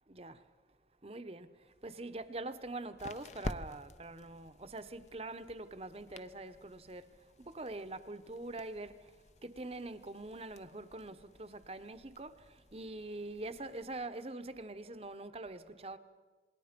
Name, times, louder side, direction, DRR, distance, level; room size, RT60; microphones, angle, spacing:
voice 1, 0.1-0.5 1.0-16.0, right 2 dB, 35° right, 0.9 m, -44 dB
sound 1, 1.7-14.1, left 2 dB, 40° left, 0.7 m, -50 dB
28.0 x 21.0 x 5.2 m
head